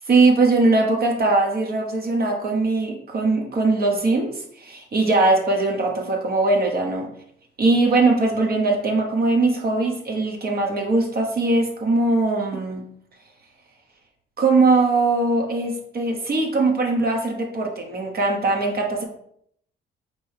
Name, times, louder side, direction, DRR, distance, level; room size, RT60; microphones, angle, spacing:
voice 1, 0.1-7.1 7.6-12.8 14.4-19.0, right 3 dB, 50° right, 0 dB, 0.9 m, -20 dB
4.3 x 3.0 x 3.3 m, 0.68 s
cardioid pair, 90°, 20 cm